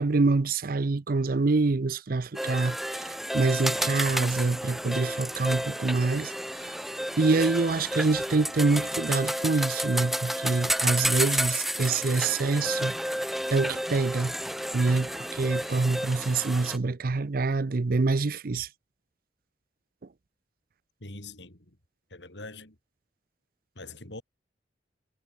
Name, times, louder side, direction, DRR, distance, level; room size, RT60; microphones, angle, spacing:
voice 1, 0.0-6.3 7.2-13.0 13.5-14.3 14.7-18.7, right 3 dB, 55° right, 0.6 m, -26 dB
sound 1, 2.3-16.8, equal, ahead, 1.2 m, -31 dB
voice 2, 21.0-21.8 22.1-22.8 23.8-24.2, left 2 dB, 85° left, 5.8 m, -43 dB
head